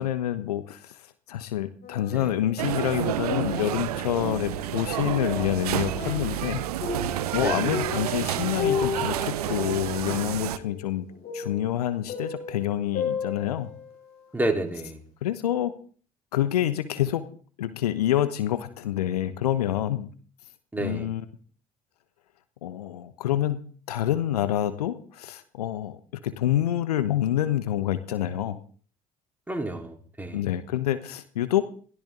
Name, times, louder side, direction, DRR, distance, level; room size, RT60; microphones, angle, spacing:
voice 1, 0.0-6.6 7.3-11.1 11.3-13.7 15.2-15.7 16.3-17.2 17.6-20.1 20.8-21.3 22.6-26.0 26.2-28.6 30.3-31.6, left 12 dB, 75° left, 13 dB, 1.1 m, -27 dB
sound 1, 1.8-2.7 3.1-14.2 14.7-14.8, left 6 dB, 55° left, 6.6 m, -35 dB
sound 2, 2.6-10.6, right 13 dB, 75° right, 0.8 m, -30 dB
voice 2, 7.4-7.8 14.3-15.0 20.7-21.1 29.5-30.4, right 1 dB, 10° right, 3 dB, 4.1 m, -30 dB
22.0 x 15.5 x 3.9 m, 0.43 s
figure-of-eight pair, 55°, 20 cm